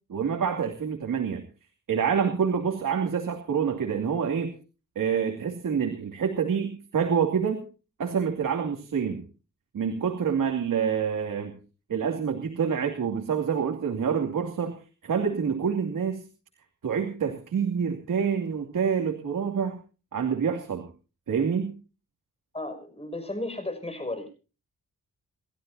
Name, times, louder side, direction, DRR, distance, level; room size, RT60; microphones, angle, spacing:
voice 1, 0.1-1.4 1.9-4.5 5.0-7.6 8.0-9.2 9.7-11.6 11.9-14.8 15.0-16.3 16.8-19.8 20.1-20.9 21.3-21.7, right 7 dB, 75° right, 3 dB, 2.7 m, -27 dB
voice 2, 22.5-24.3, left 2 dB, 20° left, 8 dB, 6.1 m, -34 dB
29.5 x 13.0 x 2.7 m, 0.35 s
wide cardioid pair, 100°, 33 cm